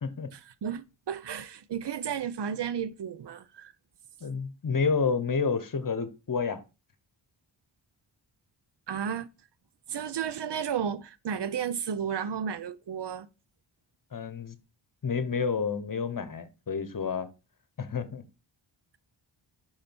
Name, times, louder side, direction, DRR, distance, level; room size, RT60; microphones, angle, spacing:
voice 1, 0.3-3.7 8.9-9.3 9.9-13.3, right 8 dB, 55° right, 0.8 m, -33 dB
voice 2, 4.2-6.6 14.1-14.6 15.0-17.3 17.8-18.2, left 5 dB, 40° left, 1.2 m, -29 dB
5.7 x 5.0 x 4.4 m
cardioid pair, 45°, 49 cm